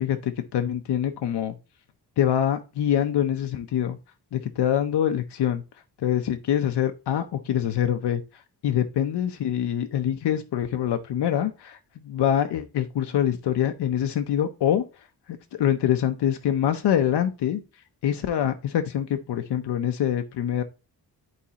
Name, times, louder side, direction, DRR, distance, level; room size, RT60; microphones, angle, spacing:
voice 1, 0.0-1.5 2.2-4.0 4.3-5.6 6.0-8.2 8.6-14.8 15.3-17.6 18.0-20.6, left 10 dB, 80° left, 0.7 m, -25 dB
11.0 x 4.1 x 2.8 m
wide cardioid pair, 135°, 40 cm